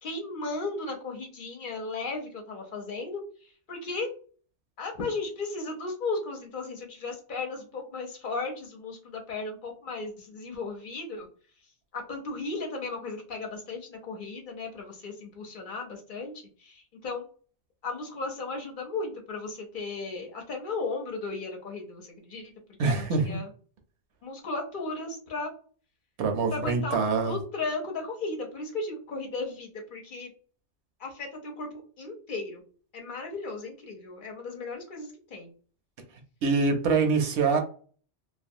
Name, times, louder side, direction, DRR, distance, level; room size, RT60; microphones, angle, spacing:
voice 1, 0.0-4.1 4.8-11.3 11.9-17.3 17.8-22.5 22.9-23.5 24.2-25.5 26.5-27.0 27.2-30.3 31.0-31.7 32.0-32.6 32.9-35.5, left 3 dB, 55° left, 1 dB, 0.7 m, -35 dB
voice 2, 22.8-23.4 26.2-27.3 36.4-37.6, right 4 dB, 75° right, 4 dB, 0.8 m, -24 dB
2.4 x 2.2 x 2.6 m, 0.41 s
omnidirectional pair, 1.2 m